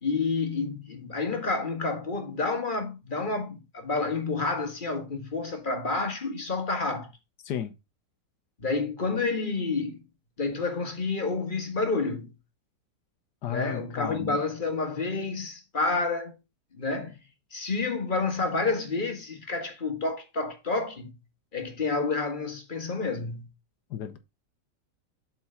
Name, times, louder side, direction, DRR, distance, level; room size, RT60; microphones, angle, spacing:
voice 1, 0.0-7.1 8.6-10.0 10.4-12.3 13.5-16.4 16.7-17.2 17.5-21.1 21.5-23.5, left 3 dB, 30° left, 1.7 m, -29 dB
voice 2, 13.4-14.4 23.9-24.2, left 9 dB, 75° left, 1.6 m, -33 dB
7.4 x 4.7 x 5.7 m
omnidirectional pair, 1.8 m